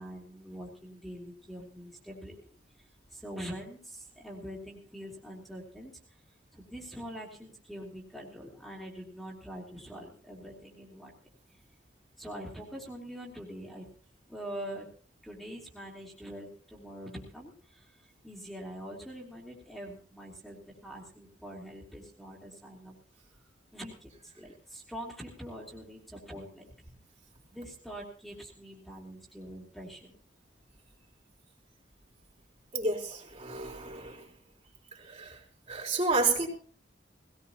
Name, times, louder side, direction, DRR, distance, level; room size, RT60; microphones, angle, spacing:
voice 1, 0.0-2.4 2.8-5.9 6.5-11.1 12.2-13.9 14.3-14.9 15.2-22.9 23.7-26.7 27.5-30.1, equal, ahead, -3 dB, 2.9 m, -44 dB
voice 2, 32.7-34.2 35.1-35.4 35.7-36.5, right 3 dB, 40° right, -2 dB, 4.0 m, -30 dB
19.5 x 18.0 x 2.9 m, 0.42 s
head